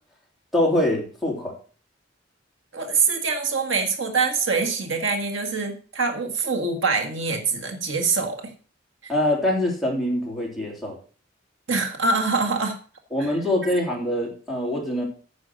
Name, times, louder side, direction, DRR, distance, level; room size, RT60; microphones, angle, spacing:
voice 1, 0.5-1.5 9.1-11.0 13.1-15.0, left 1 dB, ahead, -2 dB, 3.3 m, -24 dB
voice 2, 2.7-8.5 9.0-9.1 11.7-12.8 13.2-13.3 13.6-13.7, right 4 dB, 90° right, 4 dB, 1.8 m, -24 dB
9.5 x 6.4 x 6.4 m, 0.39 s
head